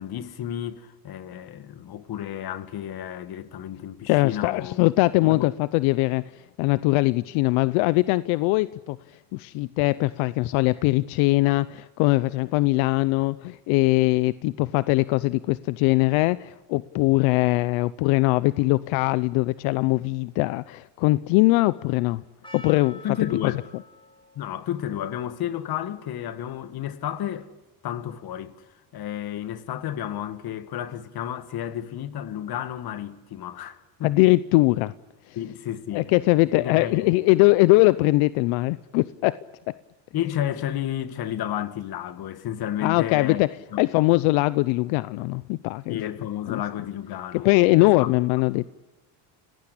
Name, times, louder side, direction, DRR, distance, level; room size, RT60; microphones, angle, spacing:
voice 1, 0.0-4.8 5.2-5.5 23.0-23.6 24.4-27.5 27.8-28.7 28.9-34.2 35.4-36.1 36.5-37.1 40.1-43.4 43.7-43.8 45.9-47.5 47.8-48.1, left 11 dB, 50° left, 2.1 m, -32 dB
voice 2, 4.1-22.2 22.5-23.0 23.4-23.5 34.0-34.9 35.3-35.4 35.9-39.4 39.7-39.8 42.8-43.5 43.8-46.0 46.5-46.6 47.3-48.7, left 21 dB, 80° left, 0.8 m, -21 dB
Percussion, 22.4-27.7, left 2 dB, 10° left, 3.7 m, -50 dB
30.0 x 18.5 x 8.6 m
cardioid pair, 120°, 48 cm